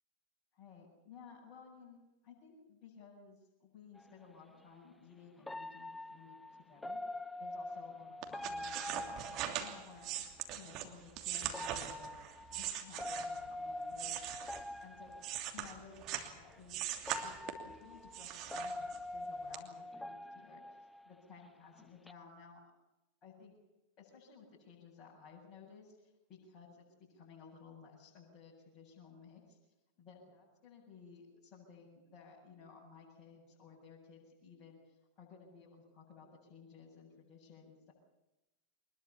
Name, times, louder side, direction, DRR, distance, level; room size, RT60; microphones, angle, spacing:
voice 1, 0.5-2.0 2.2-7.0 7.4-10.2 10.5-12.2 12.5-14.2 14.8-15.2 15.5-22.7 23.2-23.6 24.0-29.6 30.0-37.9, left 5 dB, 30° left, -5 dB, 8.0 m, -57 dB
sound 1, 4.0-4.1 5.5-10.2 11.4-15.7 16.5-16.6 17.1-21.5 21.8-22.1, left 2 dB, 5° left, 0.7 m, -45 dB
sound 2, 8.2-13.5 13.9-16.3 16.7-17.7 18.1-19.2 19.5-19.6, right 11 dB, 40° right, 2.8 m, -41 dB
24.0 x 21.0 x 7.2 m, 0.96 s
figure-of-eight pair, 90°, 0 cm